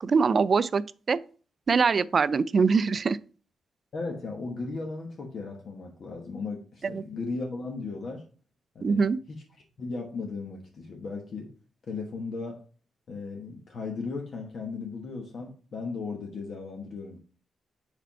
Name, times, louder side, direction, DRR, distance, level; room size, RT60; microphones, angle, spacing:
voice 1, 0.0-0.8 1.1-1.2 1.7-3.2 6.8-7.0 8.8-9.2, right 5 dB, 45° right, 0.4 m, -23 dB
voice 2, 3.9-8.2 8.7-9.0 9.3-9.4 9.8-11.5 11.9-12.6 13.1-17.2, left 4 dB, 55° left, 1.2 m, -36 dB
5.0 x 4.4 x 5.6 m
cardioid pair, 120°, 0 cm